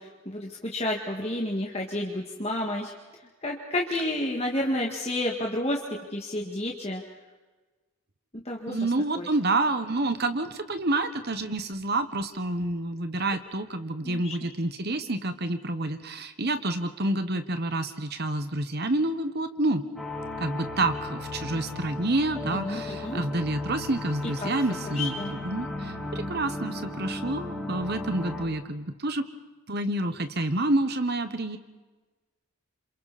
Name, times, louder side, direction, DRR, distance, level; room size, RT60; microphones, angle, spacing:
voice 1, 0.0-2.9 3.4-5.8 6.1-7.0 8.5-8.8 9.1-9.3 14.0-14.3 22.5-23.2 24.4-24.5 25.0-25.3, left 1 dB, 30° left, 0 dB, 1.9 m, -30 dB
voice 2, 8.7-19.8 20.4-29.2 29.7-31.6, right 2 dB, 45° right, 9 dB, 1.2 m, -28 dB
sound 1, 20.0-28.5, left 2 dB, ahead, 4.0 m, -36 dB
28.5 x 27.5 x 4.3 m, 1.2 s
head